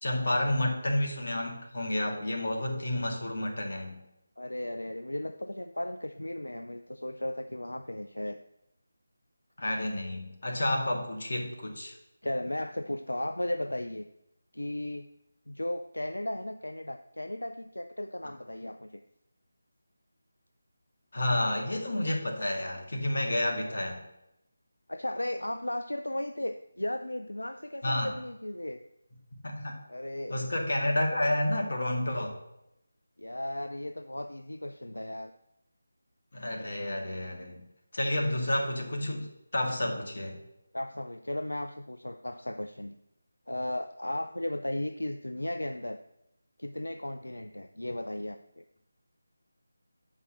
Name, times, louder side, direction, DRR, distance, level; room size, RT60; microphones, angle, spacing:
voice 1, 0.0-4.0 9.6-11.9 21.1-24.0 27.8-28.1 29.4-29.8 30.3-32.4 36.3-37.6 37.9-39.3 39.5-40.4, left 1 dB, 60° left, 1 dB, 2.3 m, -30 dB
voice 2, 4.4-8.4 12.2-14.1 14.5-15.0 15.5-19.0 23.7-23.9 24.9-28.8 29.9-30.4 33.2-35.3 40.7-42.9 43.5-46.0 46.6-48.6, left 1 dB, 85° left, 8 dB, 0.5 m, -35 dB
8.0 x 5.6 x 6.2 m, 0.85 s
figure-of-eight pair, 160°, 0 cm